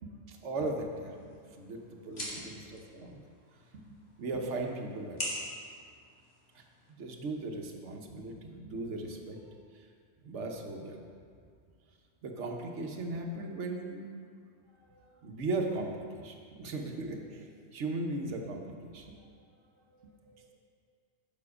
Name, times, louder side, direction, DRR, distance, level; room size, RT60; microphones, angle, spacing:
voice 1, 0.0-1.1 1.5-1.8 2.0-3.2 3.7-5.2 6.5-9.4 9.7-9.9 10.2-11.0 12.2-14.1 15.2-19.2, right 2 dB, 70° right, 2 dB, 1.2 m, -37 dB
sound 1, 0.9-6.9, equal, 55° left, 2.2 m, -44 dB
voice 2, 2.1-2.6 14.7-15.2 19.0-19.3 19.8-20.5, right 2 dB, 25° right, -1 dB, 1.0 m, -59 dB
7.8 x 7.3 x 4.8 m, 2.1 s
omnidirectional pair, 1.3 m